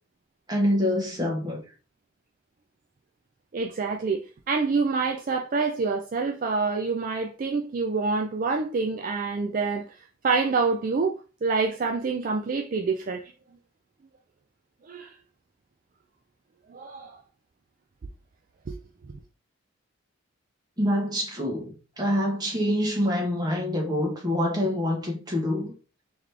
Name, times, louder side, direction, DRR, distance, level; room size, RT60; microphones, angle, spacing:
voice 1, 0.5-1.6 20.8-25.7, left 1 dB, 20° right, 1.3 m, -26 dB
voice 2, 3.5-10.0 10.2-13.3 14.8-15.2 16.7-17.2 18.7-18.8, right 4 dB, 40° right, 0.3 m, -27 dB
3.9 x 3.1 x 3.3 m
head